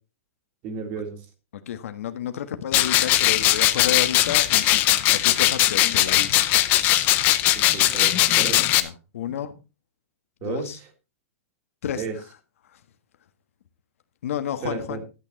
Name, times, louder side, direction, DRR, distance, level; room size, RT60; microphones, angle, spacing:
voice 1, 0.6-1.2 7.5-8.8 10.4-10.8 11.9-12.2 14.6-15.0, right 5 dB, 25° right, 6 dB, 2.1 m, -33 dB
voice 2, 1.5-6.5 8.8-9.5 10.4-10.8 11.8-12.2 12.6-12.8 14.2-15.0, left 9 dB, 65° left, 9 dB, 1.5 m, -31 dB
sound 1, 2.7-8.8, left 15 dB, 20° left, 0.6 m, -19 dB
12.0 x 8.6 x 4.2 m, 0.30 s
supercardioid pair, 175°, 8 cm